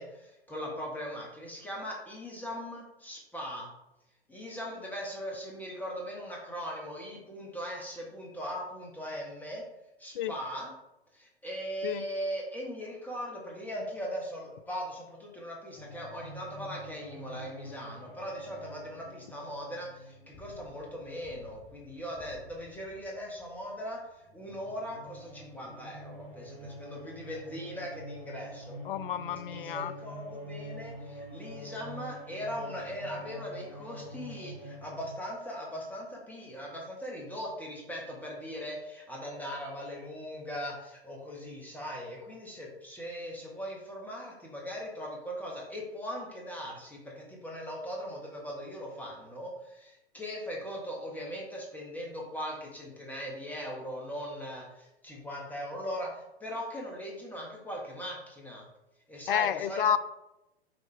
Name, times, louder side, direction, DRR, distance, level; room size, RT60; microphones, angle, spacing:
voice 1, 0.0-3.7 4.3-9.6 10.0-10.7 11.1-24.0 24.3-28.8 29.5-58.6 59.1-59.8, equal, 5° left, -2 dB, 1.5 m, -39 dB
sound 1, 15.8-23.9 24.2-35.1, equal, 35° left, 1.6 m, -46 dB
voice 2, 28.9-29.9 59.3-60.0, left 10 dB, 55° left, 15 dB, 0.4 m, -30 dB
6.7 x 4.2 x 3.4 m, 0.91 s
figure-of-eight pair, 105°, 32 cm